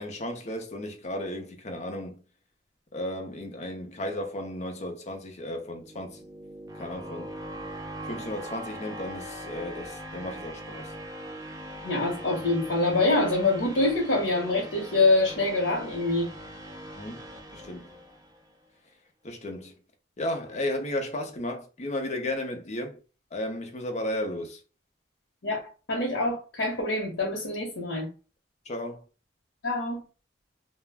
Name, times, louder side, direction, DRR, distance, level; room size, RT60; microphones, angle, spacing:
voice 1, 0.0-2.2 2.9-6.3 6.7-7.4 8.0-10.9 16.9-17.3 17.5-18.0 19.2-19.8 20.2-23.0 23.3-24.6 28.6-29.0, left 1 dB, 40° left, 0.6 m, -34 dB
sound 1, 5.6-18.5, equal, 20° right, 0.4 m, -41 dB
voice 2, 11.8-16.3 25.4-25.6 25.9-28.1 29.6-30.0, left 2 dB, 85° left, 0.8 m, -25 dB
2.4 x 2.1 x 3.3 m
head